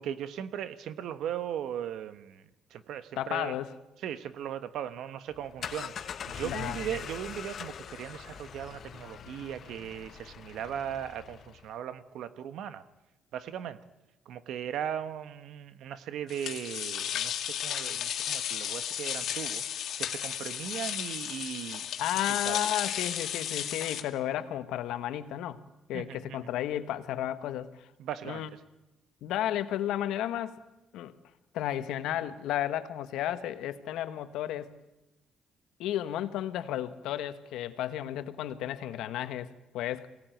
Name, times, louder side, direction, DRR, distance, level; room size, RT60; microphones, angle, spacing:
voice 1, 0.0-2.4 2.7-3.5 4.0-12.8 13.3-13.8 14.3-21.8 22.5-22.6 25.9-26.4 28.0-28.4, right 9 dB, 75° right, 12 dB, 1.3 m, -38 dB
voice 2, 3.2-3.7 6.4-6.8 22.0-27.9 28.2-28.5 29.2-30.6 30.9-31.2 31.5-34.8 35.8-40.1, left 12 dB, 85° left, 11 dB, 1.3 m, -33 dB
sound 1, 5.3-11.7, left 8 dB, 50° left, 0.9 m, -42 dB
sound 2, 16.3-24.0, left 10 dB, 65° left, 2.1 m, -34 dB
23.5 x 17.5 x 9.2 m, 0.99 s
cardioid pair, 105°, 0 cm